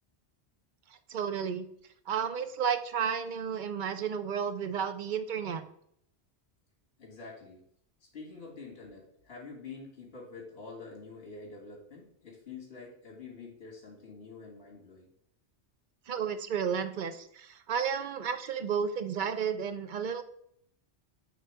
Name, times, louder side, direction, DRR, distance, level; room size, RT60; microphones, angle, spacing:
voice 1, 1.1-1.7 2.1-5.6 16.1-20.2, right 7 dB, 55° right, 10 dB, 0.6 m, -32 dB
voice 2, 7.0-7.6 8.1-15.1, left 4 dB, 60° left, -3 dB, 2.1 m, -47 dB
8.2 x 3.1 x 4.6 m, 0.69 s
omnidirectional pair, 1.2 m